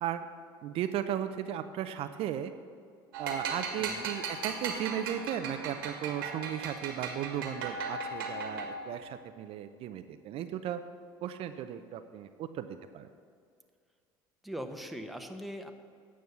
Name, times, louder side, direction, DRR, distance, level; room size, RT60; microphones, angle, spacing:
voice 1, 0.6-2.5 3.2-10.8 11.2-13.1, right 10 dB, 55° right, 9 dB, 0.5 m, -36 dB
sound 1, 3.1-8.9, right 4 dB, 85° right, 1.6 m, -37 dB
voice 2, 3.8-4.1 14.4-15.7, equal, ahead, 4 dB, 1.0 m, -41 dB
9.3 x 6.3 x 6.9 m, 2.2 s
hypercardioid pair, 80°, 12 cm